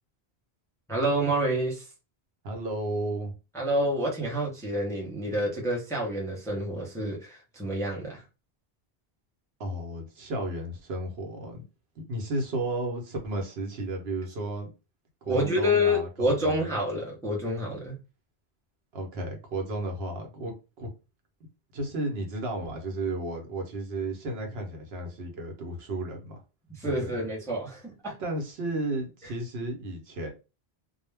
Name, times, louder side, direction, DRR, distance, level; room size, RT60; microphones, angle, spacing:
voice 1, 0.9-1.9 3.5-8.2 15.2-18.0 26.7-28.1, equal, 5° left, 0.6 m, -28 dB
voice 2, 2.4-3.3 9.6-11.6 12.0-14.7 15.2-16.7 18.9-20.9 21.7-26.4 26.8-27.1 28.2-30.3, right 2 dB, 75° right, 0.9 m, -33 dB
2.2 x 2.0 x 3.2 m
omnidirectional pair, 1.1 m